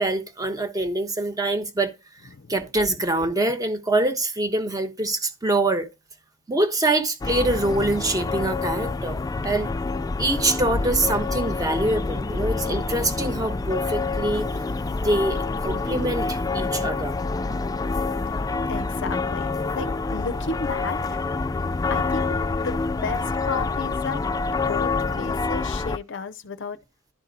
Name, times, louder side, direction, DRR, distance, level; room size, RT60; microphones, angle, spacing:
voice 1, 0.0-1.9 2.5-5.9 6.5-9.7 10.2-14.5 14.9-17.2, right 2 dB, 15° right, 1.1 m, -25 dB
sound 1, 7.2-26.0, left 3 dB, 15° left, 0.3 m, -27 dB
voice 2, 18.6-19.5 19.7-21.2 21.9-24.2 24.7-24.9 25.2-26.8, left 4 dB, 60° left, 0.6 m, -33 dB
11.5 x 4.2 x 4.0 m
head